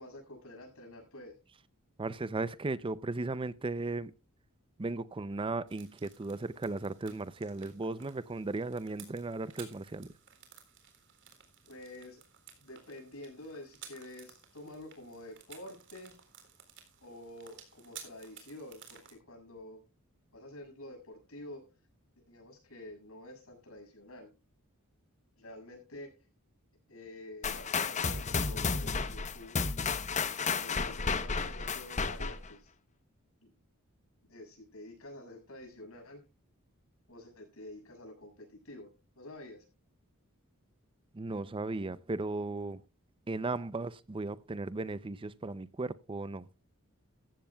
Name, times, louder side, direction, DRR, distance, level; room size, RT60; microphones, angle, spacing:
voice 1, 0.0-1.3 11.7-12.2 12.6-16.1 17.0-19.8 20.3-21.6 22.3-24.3 25.4-26.1 26.9-29.6 30.3-32.7 33.4-33.5 34.3-36.2 37.1-38.9 39.1-39.6, left 1 dB, 70° left, 6.7 m, -48 dB
voice 2, 2.0-4.1 4.8-10.1 41.1-42.8 43.3-46.5, right 3 dB, 25° right, 0.5 m, -36 dB
sound 1, 5.7-19.1, right 8 dB, 55° right, 3.7 m, -55 dB
sound 2, 27.4-32.5, left 5 dB, 35° left, 0.8 m, -32 dB
15.0 x 14.0 x 2.3 m
head